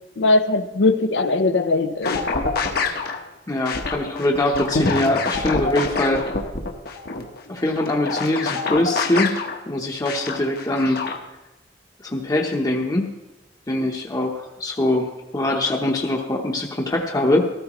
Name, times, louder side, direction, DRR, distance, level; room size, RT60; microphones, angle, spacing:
voice 1, 0.2-2.2, left 2 dB, 85° left, 9 dB, 0.7 m, -20 dB
sound 1, 2.0-3.2 3.7-9.6 10.1-11.2, left 3 dB, 60° left, 1.1 m, -26 dB
voice 2, 3.5-6.2 7.5-9.4 9.7-11.0 12.0-13.1 13.7-17.5, left 1 dB, 20° left, 0 dB, 0.8 m, -22 dB
14.0 x 13.5 x 3.0 m, 1.0 s
head